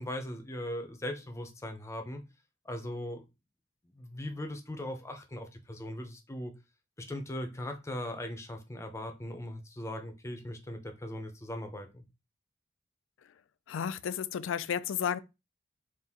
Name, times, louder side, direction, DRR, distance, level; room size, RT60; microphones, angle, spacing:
voice 1, 0.0-2.2 2.6-3.2 3.9-6.5 7.0-12.0, left 1 dB, 15° left, 0.6 m, -39 dB
voice 2, 13.7-15.2, left 8 dB, 85° left, 0.4 m, -32 dB
4.2 x 2.5 x 3.6 m
head